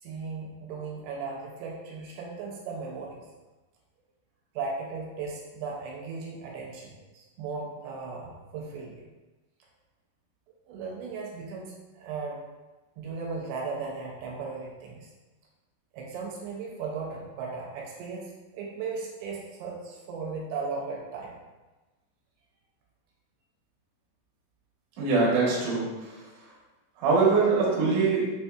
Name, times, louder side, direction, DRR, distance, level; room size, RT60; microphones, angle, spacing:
voice 1, 0.0-3.2 4.6-9.0 10.7-12.4 13.0-15.1 15.9-21.3, right 4 dB, 85° right, -2 dB, 2.5 m, -36 dB
voice 2, 25.0-25.8 27.0-28.2, right 4 dB, 65° right, -5 dB, 2.2 m, -22 dB
5.9 x 2.6 x 2.3 m, 1.2 s
omnidirectional pair, 4.4 m